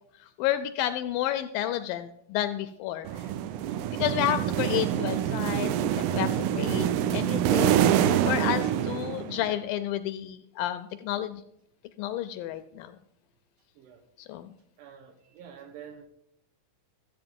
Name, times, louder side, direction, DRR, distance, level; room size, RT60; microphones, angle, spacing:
voice 1, 0.4-3.2 3.9-11.4 12.0-13.0 14.2-14.5, left 12 dB, 80° left, 2.1 m, -31 dB
sound 1, 3.0-9.6, right 10 dB, 90° right, 2.7 m, -26 dB
voice 2, 14.8-16.1, right 8 dB, 70° right, 2.2 m, -48 dB
14.0 x 8.2 x 5.2 m
omnidirectional pair, 4.4 m